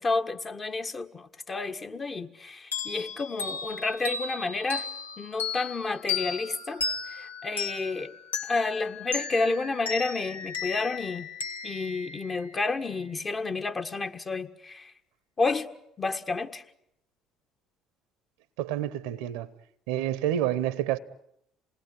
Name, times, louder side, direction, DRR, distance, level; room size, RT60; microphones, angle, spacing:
voice 1, 0.0-4.9 5.2-6.8 7.1-8.1 8.5-11.3 11.6-14.9 15.4-15.7 16.0-16.6, left 3 dB, 30° left, 1.6 m, -30 dB
sound 1, 2.7-13.0, left 5 dB, 90° left, 1.1 m, -35 dB
voice 2, 18.6-19.5 19.9-21.0, right 12 dB, 75° right, 0.9 m, -28 dB
27.5 x 19.5 x 9.7 m
hypercardioid pair, 55°, 0 cm